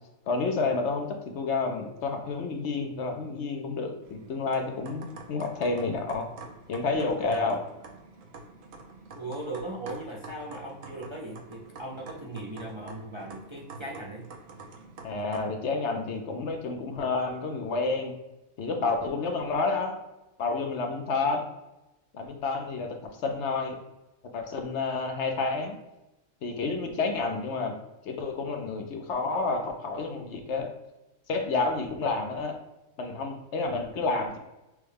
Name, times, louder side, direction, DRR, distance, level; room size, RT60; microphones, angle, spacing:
voice 1, 0.3-6.3 6.7-7.6 15.0-18.1 18.6-19.9 20.4-21.4 22.1-23.8 24.3-25.7 26.4-27.8 28.0-30.7 31.3-32.6 33.0-34.4, left 3 dB, 65° left, 4 dB, 0.9 m, -29 dB
sound 1, 4.0-15.5, right 3 dB, 75° right, 1.1 m, -47 dB
voice 2, 9.1-14.3, right 1 dB, 40° right, -3 dB, 0.4 m, -38 dB
6.1 x 2.2 x 3.3 m, 0.97 s
omnidirectional pair, 1.4 m